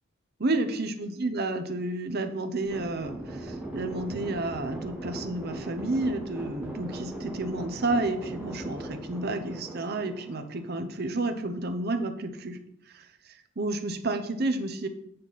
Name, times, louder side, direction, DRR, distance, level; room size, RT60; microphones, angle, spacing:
voice 1, 0.4-12.6 12.9-14.9, right 2 dB, 50° right, 8 dB, 0.8 m, -31 dB
sound 1, 2.6-10.5, right 1 dB, 25° right, 3.7 m, -52 dB
sound 2, 2.7-11.0, right 1 dB, 10° right, 1.4 m, -39 dB
7.5 x 6.7 x 4.1 m, 0.73 s
head